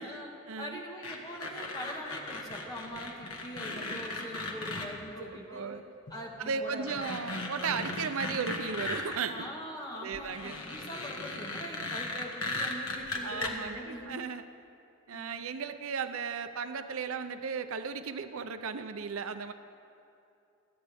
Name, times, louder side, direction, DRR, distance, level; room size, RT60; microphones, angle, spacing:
voice 1, 0.0-0.8 5.2-5.8 6.4-9.5 9.9-10.6 13.2-14.4 15.1-19.5, right 5 dB, 65° right, 9 dB, 0.6 m, -36 dB
voice 2, 0.6-5.7 6.1-7.0 9.3-14.2 15.1-15.4, equal, 20° left, 0 dB, 1.4 m, -43 dB
sound 1, 1.0-4.9 6.1-6.2 6.6-9.2 10.1-13.5, left 2 dB, 75° left, 1.4 m, -37 dB
26.5 x 9.5 x 3.5 m, 2.7 s
head